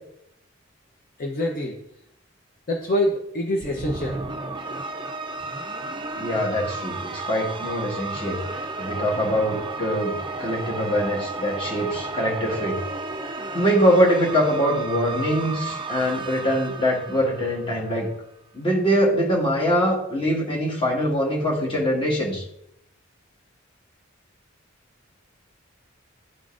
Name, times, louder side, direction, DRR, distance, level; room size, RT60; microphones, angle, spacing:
voice 1, 1.2-1.8 2.7-4.2, left 1 dB, 45° left, 0 dB, 0.7 m, -25 dB
sound 1, 3.6-18.0, right 3 dB, 25° right, 0.4 m, -33 dB
voice 2, 6.2-12.8 13.2-18.1 18.5-22.4, equal, 25° left, -3 dB, 1.5 m, -23 dB
11.0 x 3.8 x 2.5 m, 0.77 s
head